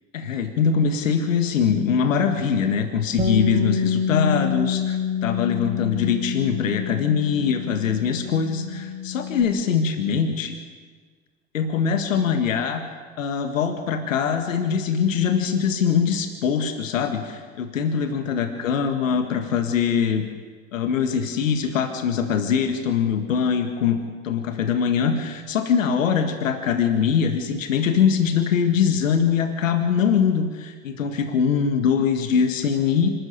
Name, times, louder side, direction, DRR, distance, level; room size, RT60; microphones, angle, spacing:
voice 1, 0.1-10.6 11.5-12.9 13.2-20.2 20.7-24.0 24.2-33.1, left 7 dB, 80° left, 6 dB, 1.9 m, -22 dB
Bass guitar, 3.2-9.4, left 5 dB, 20° right, 3.0 m, -27 dB
26.0 x 13.5 x 8.3 m, 1.5 s
hypercardioid pair, 75°, 39 cm